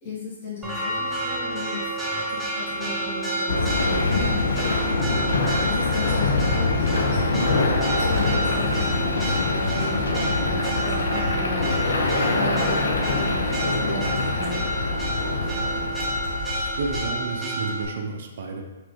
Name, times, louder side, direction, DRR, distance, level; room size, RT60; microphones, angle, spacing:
voice 1, 0.0-4.3 5.1-7.4 8.0-11.7 12.3-14.1 14.4-14.7, left 2 dB, 40° left, -8 dB, 1.2 m, -35 dB
Church bell, 0.6-17.9, right 1 dB, 10° right, 0.6 m, -29 dB
sound 1, 3.5-17.1, left 3 dB, 65° left, 0.4 m, -24 dB
voice 2, 16.5-18.6, right 3 dB, 60° right, 2 dB, 0.5 m, -31 dB
3.0 x 2.6 x 3.5 m, 1.2 s
figure-of-eight pair, 125°, 0 cm